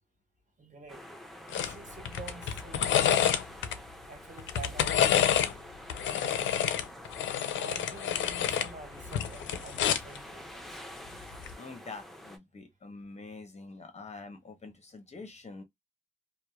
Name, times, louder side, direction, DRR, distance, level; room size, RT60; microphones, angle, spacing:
voice 1, 0.6-1.1 1.5-3.3 4.1-5.2 6.1-6.7 7.6-11.1, right 4 dB, 40° right, 1.3 m, -47 dB
sound 1, 0.9-12.4, equal, ahead, 0.8 m, -47 dB
sound 2, 1.5-1.7 2.1-3.8 4.4-5.5 5.9-8.7 9.0-10.2 11.3-11.5, left 10 dB, 75° left, 0.4 m, -28 dB
voice 2, 11.6-15.6, left 3 dB, 35° left, 0.8 m, -46 dB
2.7 x 2.0 x 2.2 m
supercardioid pair, 55°, 20 cm